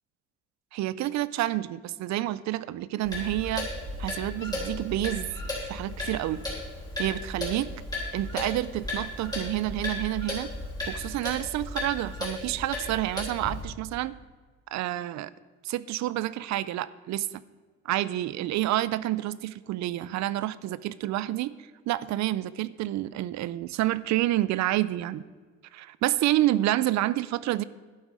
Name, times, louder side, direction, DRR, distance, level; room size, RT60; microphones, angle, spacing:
voice 1, 0.7-3.7 4.0-5.3 5.6-6.4 7.0-7.7 8.1-10.5 10.9-14.1 14.7-15.3 15.6-17.3 17.9-21.5 21.9-25.2 25.7-27.6, right 15 dB, 60° right, 18 dB, 0.4 m, -28 dB
Clock, 3.0-13.6, left 2 dB, 10° left, 3.3 m, -35 dB
11.5 x 8.3 x 5.1 m, 1.4 s
cardioid pair, 170°, 31 cm